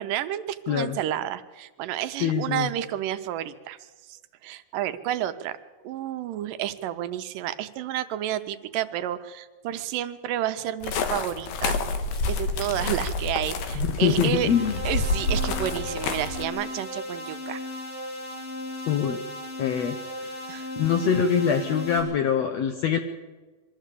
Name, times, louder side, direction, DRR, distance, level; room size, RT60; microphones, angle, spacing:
voice 1, 0.0-3.8 4.1-5.6 5.8-11.8 12.3-14.5 14.9-17.6 20.5-20.7, right 11 dB, 80° right, 10 dB, 2.3 m, -30 dB
voice 2, 0.7-1.0 2.2-2.7 13.8-14.8 18.9-19.2 19.6-20.3 20.8-23.0, left 7 dB, 70° left, 6 dB, 1.6 m, -24 dB
sound 1, 10.8-16.5, left 3 dB, 90° left, 3.0 m, -28 dB
sound 2, 14.3-22.0, left 1 dB, 45° left, 7.6 m, -36 dB
23.0 x 13.5 x 8.3 m, 1.3 s
omnidirectional pair, 4.0 m